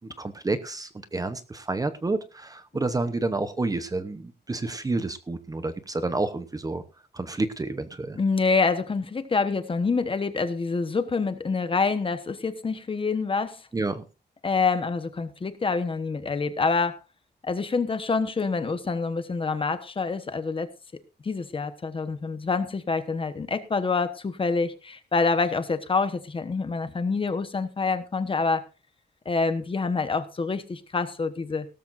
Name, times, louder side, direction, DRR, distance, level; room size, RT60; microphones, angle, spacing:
voice 1, 0.2-6.8 7.1-8.2 13.7-14.0, right 3 dB, 20° right, 11 dB, 0.9 m, -29 dB
voice 2, 8.2-13.6 14.4-17.0 17.4-20.7 21.2-28.6 29.2-31.7, left 4 dB, 30° left, 10 dB, 1.2 m, -26 dB
17.5 x 13.5 x 2.6 m, 0.31 s
wide cardioid pair, 180°, 18 cm